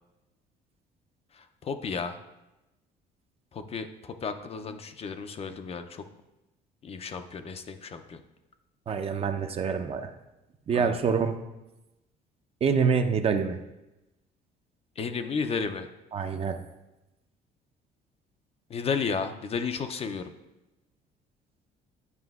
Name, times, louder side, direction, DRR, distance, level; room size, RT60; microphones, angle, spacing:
voice 1, 1.3-2.2 3.5-6.1 6.8-8.2 10.7-11.0 15.0-15.9 18.7-20.3, left 5 dB, 35° left, 8 dB, 0.4 m, -33 dB
voice 2, 8.9-10.1 10.7-11.4 12.6-13.6 16.1-16.6, right 6 dB, 35° right, 7 dB, 0.5 m, -26 dB
9.6 x 4.9 x 2.3 m, 0.98 s
cardioid pair, 110°, 17 cm